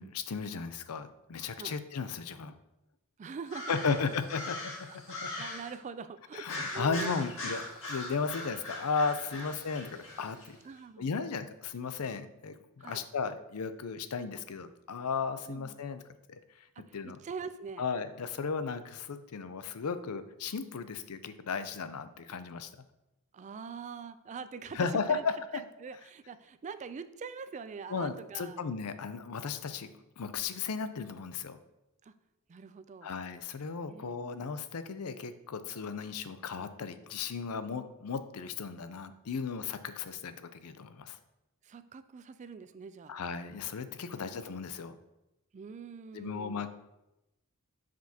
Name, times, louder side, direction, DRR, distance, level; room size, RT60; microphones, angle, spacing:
voice 1, 0.0-2.5 3.7-5.3 6.3-10.6 11.0-16.0 16.3-16.4 16.9-17.2 17.8-22.7 24.7-25.6 27.9-29.9 30.2-31.6 33.0-41.2 43.1-45.0 46.1-46.7, left 5 dB, 80° left, 11 dB, 0.5 m, -35 dB
voice 2, 3.2-4.1 4.9-7.5 9.3-9.5 10.6-11.3 12.8-13.0 15.5-15.8 16.8-17.9 23.3-25.2 25.5-28.6 32.0-32.1 32.5-33.1 33.9-34.5 41.6-43.1 44.0-44.5 45.5-46.6, right 5 dB, 35° right, 13 dB, 0.3 m, -44 dB
sound 1, 3.5-5.8 6.4-10.5, left 2 dB, 65° left, 1.8 m, -41 dB
9.2 x 5.1 x 2.8 m, 0.93 s
head